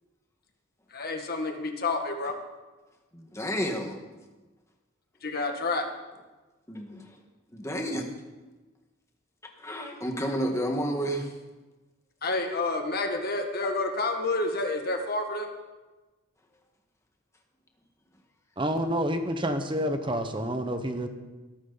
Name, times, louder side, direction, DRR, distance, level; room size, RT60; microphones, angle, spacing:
voice 1, 0.9-2.3 5.2-5.9 12.2-15.5, left 2 dB, 50° left, 4 dB, 1.8 m, -29 dB
voice 2, 3.1-4.0 6.7-7.1 7.5-8.0 9.6-11.3 12.5-12.6, equal, 15° left, 2 dB, 1.7 m, -30 dB
voice 3, 18.6-21.1, equal, 25° right, 7 dB, 1.2 m, -28 dB
21.0 x 12.5 x 4.1 m, 1.2 s
head